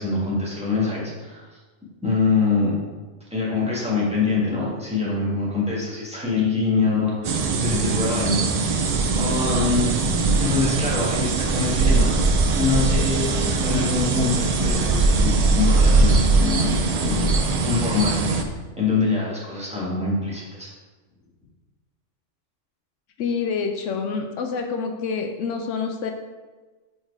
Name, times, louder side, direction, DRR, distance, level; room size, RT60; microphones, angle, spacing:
voice 1, 0.0-1.5 2.0-2.7 3.3-8.8 9.2-9.9 10.4-12.1 12.6-17.3 17.6-18.5 18.8-20.7, left 4 dB, 5° right, -6 dB, 1.5 m, -24 dB
sound 1, 7.2-18.4, right 3 dB, 90° right, 0.3 m, -21 dB
voice 2, 23.2-26.1, left 5 dB, 75° left, 5 dB, 0.9 m, -27 dB
4.6 x 4.5 x 4.6 m, 1.3 s
omnidirectional pair, 1.3 m